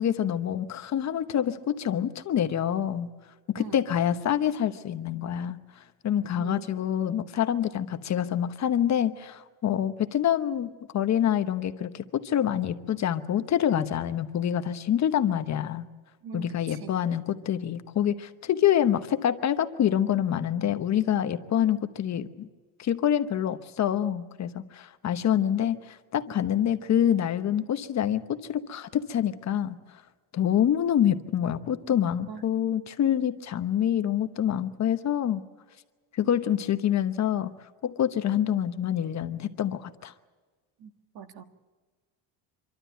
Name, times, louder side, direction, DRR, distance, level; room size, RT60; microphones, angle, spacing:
voice 1, 0.0-3.1 3.5-5.6 6.0-15.9 16.3-22.5 22.8-29.8 30.3-35.4 36.1-37.5 37.8-40.1, left 10 dB, 40° left, 10 dB, 1.0 m, -26 dB
voice 2, 6.4-6.9 16.2-16.9 32.3-32.5 40.8-41.4, right 7 dB, 55° right, 8 dB, 1.7 m, -43 dB
26.0 x 12.5 x 9.2 m, 1.4 s
cardioid pair, 130°, 43 cm